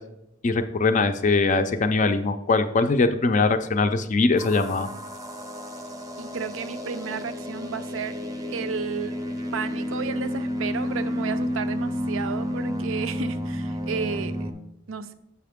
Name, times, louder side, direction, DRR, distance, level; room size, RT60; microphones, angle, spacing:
voice 1, 0.4-4.9, left 3 dB, 40° left, 9 dB, 0.4 m, -22 dB
sound 1, 4.4-14.5, equal, 20° right, 0.6 m, -31 dB
voice 2, 6.2-8.2 8.5-9.2 9.5-14.5 14.9-15.1, right 5 dB, 65° right, 12 dB, 0.5 m, -32 dB
6.9 x 5.7 x 3.5 m, 0.80 s
head